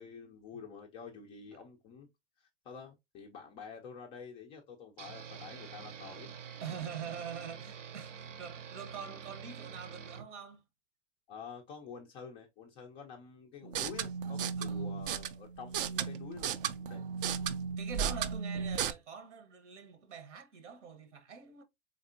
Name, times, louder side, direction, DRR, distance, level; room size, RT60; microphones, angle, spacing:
voice 1, 0.0-2.1 2.4-6.5 11.3-17.0, left 6 dB, 15° left, 0.3 m, -48 dB
sound 1, 5.0-10.3, right 7 dB, 90° right, 0.7 m, -47 dB
voice 2, 6.6-10.6 14.6-14.9 17.8-21.6, right 7 dB, 75° right, 1.1 m, -45 dB
sound 2, 13.6-18.9, right 7 dB, 50° right, 0.4 m, -35 dB
4.0 x 3.6 x 2.5 m
hypercardioid pair, 130°, 36 cm